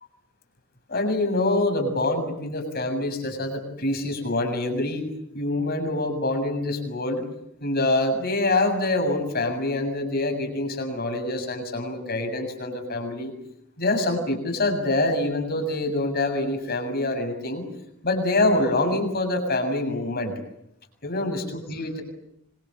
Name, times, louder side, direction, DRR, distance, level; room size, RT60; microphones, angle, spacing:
voice 1, 0.9-5.1 5.3-7.2 7.6-13.3 13.8-17.6 18.0-20.3 21.0-22.0, left 2 dB, 45° left, 6 dB, 7.2 m, -25 dB
26.5 x 26.0 x 7.8 m, 0.77 s
head